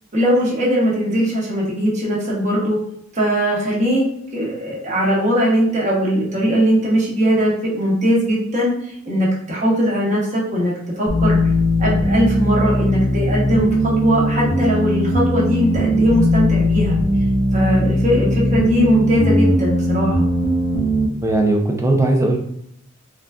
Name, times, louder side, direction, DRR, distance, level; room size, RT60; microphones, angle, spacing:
voice 1, 0.1-2.8 3.1-4.0 4.3-8.7 9.1-11.4 11.8-13.7 14.0-16.9 17.5-20.3, equal, 35° right, -5 dB, 1.0 m, -19 dB
sound 1, 11.1-21.1, equal, 40° left, 0.5 m, -18 dB
voice 2, 21.2-22.4, right 2 dB, 15° right, 2 dB, 0.4 m, -17 dB
3.6 x 2.3 x 2.3 m, 0.72 s
head